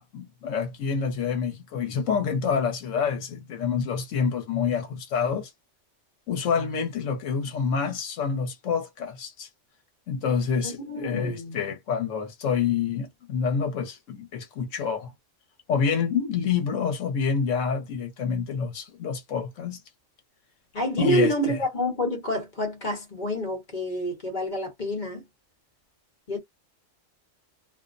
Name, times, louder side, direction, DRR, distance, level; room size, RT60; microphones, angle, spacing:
voice 1, 0.0-5.5 6.3-9.5 10.1-15.1 15.7-19.8 21.0-21.6, left 6 dB, 75° left, 1.0 m, -27 dB
voice 2, 10.6-11.6 20.7-25.2 26.3-26.4, equal, 40° left, 1.0 m, -28 dB
2.5 x 2.0 x 2.5 m
omnidirectional pair, 1.3 m